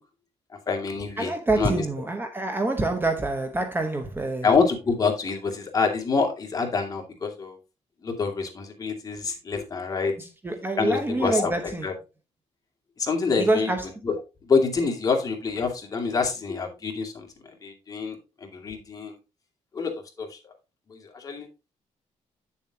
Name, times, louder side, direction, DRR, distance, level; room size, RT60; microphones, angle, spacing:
voice 1, 0.7-1.8 4.4-7.6 8.0-10.1 10.8-11.9 13.0-13.7 14.0-14.2 14.4-17.3 17.6-19.2 19.7-20.4 20.9-21.5, left 5 dB, 30° left, 2.4 m, -26 dB
voice 2, 1.2-4.5 10.4-11.9 13.4-13.9, right 2 dB, 15° right, 1.1 m, -26 dB
9.2 x 7.1 x 2.8 m
cardioid pair, 120°, 12 cm